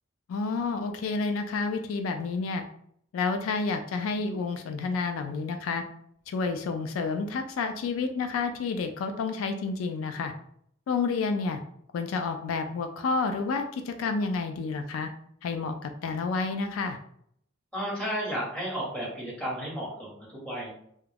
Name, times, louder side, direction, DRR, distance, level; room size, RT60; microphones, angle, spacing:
voice 1, 0.3-2.6 3.1-5.8 6.3-10.3 10.9-11.6 11.9-15.1 15.4-17.0, left 4 dB, 85° left, 7 dB, 0.3 m, -30 dB
voice 2, 17.7-20.7, equal, 5° left, -6 dB, 1.0 m, -33 dB
2.3 x 2.1 x 3.2 m, 0.68 s
head